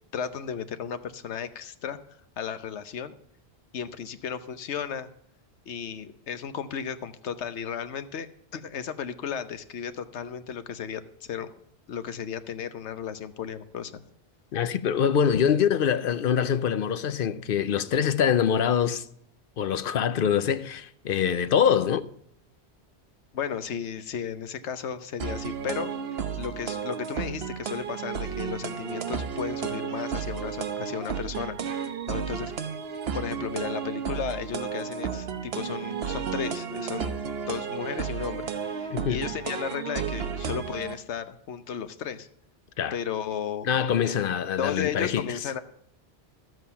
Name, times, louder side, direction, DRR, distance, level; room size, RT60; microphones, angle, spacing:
voice 1, 0.1-2.0 2.4-3.1 3.7-5.1 5.7-11.5 11.9-14.0 23.3-25.9 26.4-32.5 33.1-37.2 37.5-42.3 42.9-43.7 44.6-45.6, left 7 dB, 90° left, 1.1 m, -34 dB
voice 2, 14.5-19.1 19.6-22.1 38.9-39.2 42.8-43.0 43.6-45.3, left 8 dB, 60° left, 0.8 m, -24 dB
sound 1, 25.2-40.9, right 7 dB, 65° right, 1.1 m, -33 dB
12.5 x 7.8 x 5.6 m
omnidirectional pair, 1.1 m